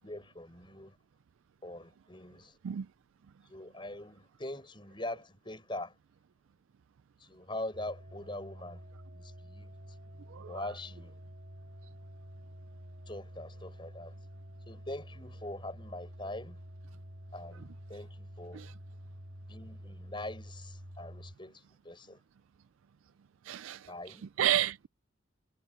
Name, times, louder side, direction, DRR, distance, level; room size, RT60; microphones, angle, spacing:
voice 1, 0.0-1.0 1.6-2.6 3.5-5.9 7.2-8.8 9.1-9.7 10.5-11.2 13.1-14.1 14.7-16.6 17.3-18.6 19.5-22.2 23.9-24.2, left 1 dB, 25° left, 6.6 m, -43 dB
sound 1, 7.7-21.4, equal, 50° right, 2.2 m, -49 dB
voice 2, 23.5-23.9 24.4-24.9, right 11 dB, 75° right, 0.4 m, -30 dB
head